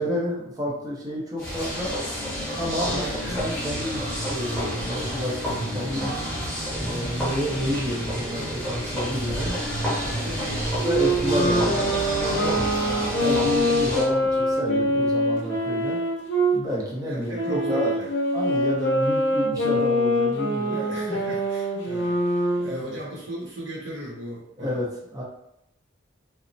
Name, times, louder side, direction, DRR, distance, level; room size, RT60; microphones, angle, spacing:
voice 1, 0.0-2.0 2.6-6.3 6.8-9.6 10.7-12.6 13.2-16.0 16.5-17.9 18.3-20.8 22.6-22.8 24.6-25.2, equal, 15° right, -4 dB, 0.6 m, -30 dB
sound 1, 1.4-14.1, equal, 5° left, 0.9 m, -30 dB
voice 2, 2.8-3.4 9.9-12.0 12.4-12.7 17.1-18.1 20.7-24.8, equal, 60° right, -5 dB, 0.8 m, -37 dB
sound 2, 2.8-15.1, right 1 dB, 75° right, 0.4 m, -37 dB
Wind instrument woodwind instrument, 10.8-16.6 17.3-22.7, equal, 55° left, 0.7 m, -24 dB
3.0 x 2.0 x 2.6 m, 0.82 s
head